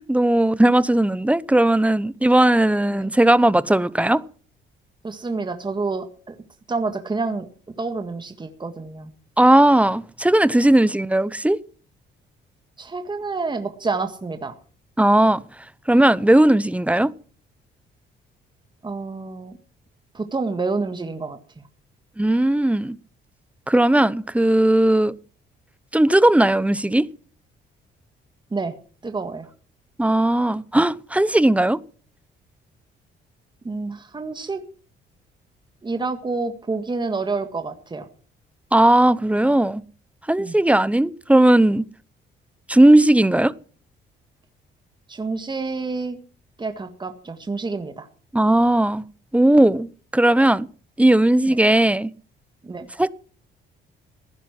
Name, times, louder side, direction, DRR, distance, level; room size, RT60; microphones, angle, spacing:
voice 1, 0.0-4.2 9.4-11.6 15.0-15.4 15.9-17.1 22.2-23.0 23.7-25.1 25.9-27.1 30.0-31.8 38.7-39.8 40.3-41.9 42.7-43.5 48.3-49.1 49.3-50.7 51.0-52.1 53.0-53.1, right 1 dB, 5° right, 0.7 m, -17 dB
voice 2, 5.0-6.3 6.7-7.5 7.8-9.1 12.8-14.5 18.8-19.6 20.1-21.6 28.5-28.7 29.0-29.5 33.6-34.6 35.8-38.1 40.4-40.6 45.1-46.2 46.6-48.1 51.4-51.6 52.6-52.9, right 3 dB, 25° right, 1.8 m, -28 dB
15.5 x 11.0 x 6.1 m
cardioid pair, 90°, 20 cm